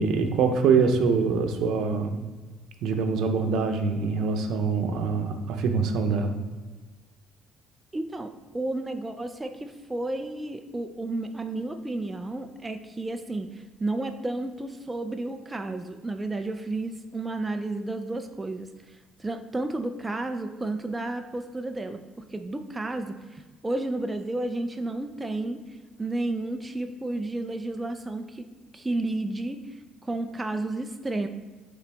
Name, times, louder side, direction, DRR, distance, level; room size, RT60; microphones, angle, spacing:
voice 1, 0.0-2.2 2.8-6.3, right 5 dB, 75° right, 5 dB, 0.7 m, -24 dB
voice 2, 7.9-18.7 19.2-25.6 26.0-28.5 28.7-29.6 30.0-31.3, right 2 dB, 15° right, 6 dB, 0.4 m, -32 dB
8.5 x 3.9 x 3.4 m, 1.3 s
cardioid pair, 100°, 0 cm